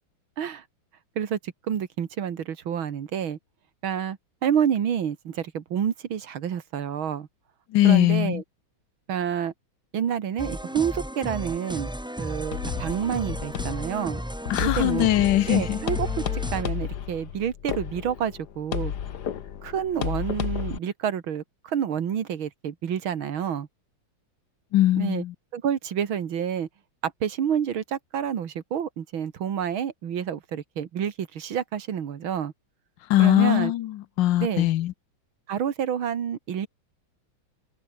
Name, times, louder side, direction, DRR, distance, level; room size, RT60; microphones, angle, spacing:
voice 1, 1.2-3.4 3.8-7.3 7.8-8.4 9.1-9.5 9.9-11.9 12.2-14.2 14.6-15.1 15.5-16.1 16.5-18.9 19.6-23.7 25.0-25.2 25.5-26.7 27.0-32.5 33.2-33.7 34.4-34.7 35.5-36.7, right 8 dB, 80° right, 2.4 m, -28 dB
voice 2, 7.7-8.4 14.5-15.8 24.7-25.3 33.1-34.9, left 14 dB, 70° left, 1.3 m, -21 dB
sound 1, 10.4-16.6, equal, ahead, 2.1 m, -34 dB
sound 2, 12.5-20.8, left 9 dB, 55° left, 1.6 m, -32 dB
omnidirectional pair, 2.2 m